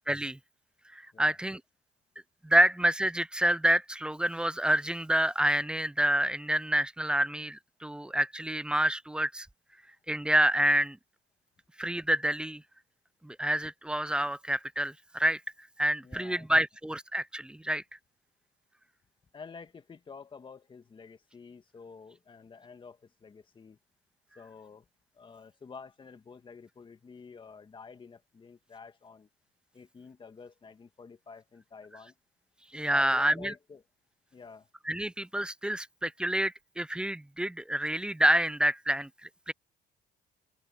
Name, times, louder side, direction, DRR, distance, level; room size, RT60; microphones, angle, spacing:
voice 1, 0.1-0.4 0.9-1.6 2.4-9.5 10.1-11.0 11.8-12.6 13.2-15.4 15.8-17.8 32.7-33.5 34.9-39.1 39.5-39.6, right 1 dB, 5° right, 0.4 m, -28 dB
voice 2, 16.0-16.5 19.3-23.8 24.4-24.9 25.1-29.3 29.7-32.2 32.9-33.8 34.3-34.7, left 5 dB, 30° left, 2.1 m, -49 dB
cardioid pair, 110°, 17 cm